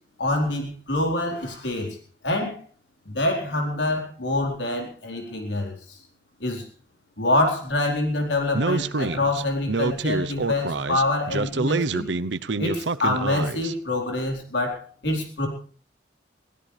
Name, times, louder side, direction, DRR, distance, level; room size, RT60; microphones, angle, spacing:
voice 1, 0.2-2.0 2.2-2.6 3.0-6.0 6.4-6.7 7.2-12.0 12.6-15.5, left 2 dB, 80° left, 2 dB, 4.4 m, -26 dB
Speech, 8.5-13.7, right 3 dB, 85° right, 0.8 m, -27 dB
22.5 x 16.5 x 3.4 m, 0.42 s
head